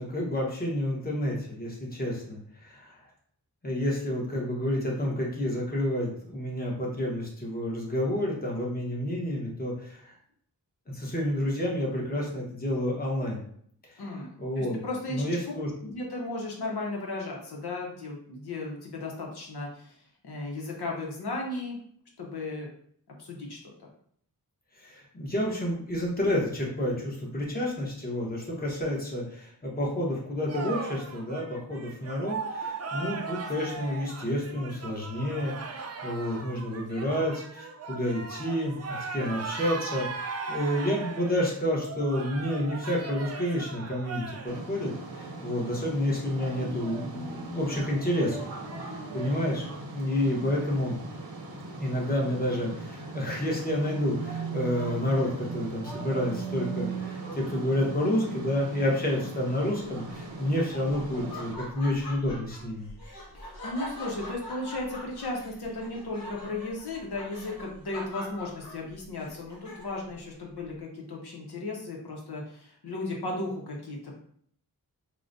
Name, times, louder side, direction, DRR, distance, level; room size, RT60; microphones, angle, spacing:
voice 1, 0.0-3.0 3.6-10.2 10.9-13.4 13.8-14.0 14.4-14.8 15.1-15.7 24.7-48.4 48.8-49.7 49.9-51.0 51.8-62.9, left 1 dB, 25° left, -2 dB, 0.9 m, -30 dB
voice 2, 14.0-15.3 15.8-19.9 20.2-21.8 22.2-22.7 23.1-23.7 50.3-50.5 63.3-74.2, left 2 dB, 85° left, -1 dB, 0.8 m, -35 dB
sound 1, 30.5-44.6, right 4 dB, 40° right, 0.4 m, -38 dB
sound 2, 44.4-61.5, right 3 dB, 70° right, 0.7 m, -38 dB
Laughter, 60.1-70.1, left 1 dB, 60° left, 1.1 m, -43 dB
4.8 x 2.1 x 2.5 m, 0.63 s
wide cardioid pair, 85°, 38 cm